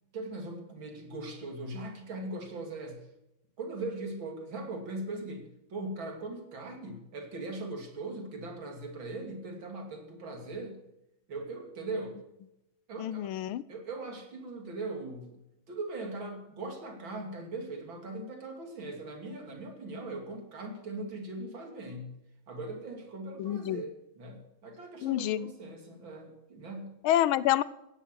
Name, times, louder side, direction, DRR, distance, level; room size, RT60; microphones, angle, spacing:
voice 1, 0.1-3.0 3.6-10.8 11.3-12.2 12.9-13.3 13.7-15.4 15.7-22.1 22.5-27.0, right 2 dB, 70° right, 3 dB, 3.5 m, -40 dB
voice 2, 13.0-13.6 23.4-23.8 25.0-25.5 27.0-27.6, left 12 dB, 85° left, 18 dB, 1.5 m, -27 dB
16.5 x 10.5 x 6.3 m, 0.89 s
omnidirectional pair, 2.2 m